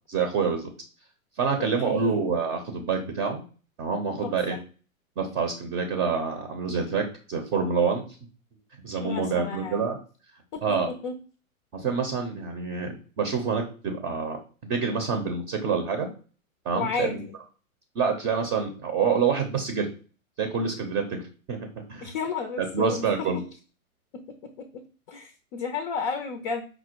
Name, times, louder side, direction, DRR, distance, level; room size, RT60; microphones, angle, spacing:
voice 1, 0.1-0.7 1.4-3.4 3.8-4.6 5.2-8.0 8.8-10.0 10.6-10.9 11.7-16.1 16.6-17.2 17.9-19.9 20.4-22.0 22.6-23.4, right 5 dB, 25° right, 5 dB, 0.7 m, -27 dB
voice 2, 1.6-2.3 4.2-4.6 9.0-9.9 10.5-11.1 16.7-17.3 22.0-23.3 24.6-24.8 25.1-26.7, left 5 dB, 35° left, 6 dB, 0.5 m, -33 dB
5.2 x 2.1 x 4.5 m, 0.37 s
hypercardioid pair, 125°, 43 cm